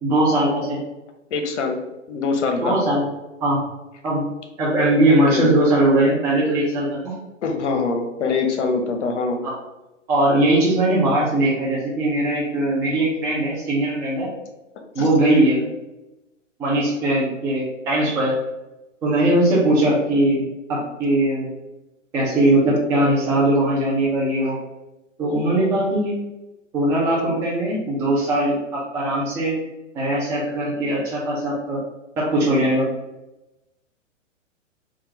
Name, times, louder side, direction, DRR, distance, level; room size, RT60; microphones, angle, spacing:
voice 1, 0.0-0.8 2.6-3.0 3.4-3.6 4.0-4.3 4.6-7.1 10.1-14.3 14.9-15.6 16.6-18.3 19.0-20.4 20.7-21.5 22.1-24.6 25.2-26.1 26.7-29.6 29.9-31.8 32.2-32.9, right 1 dB, 10° right, -6 dB, 0.4 m, -20 dB
voice 2, 1.3-1.8 2.1-2.8 5.1-5.5 7.4-9.4 15.0-15.1, left 4 dB, 65° left, 4 dB, 0.8 m, -23 dB
3.6 x 2.4 x 2.7 m, 0.99 s
hypercardioid pair, 120°, 38 cm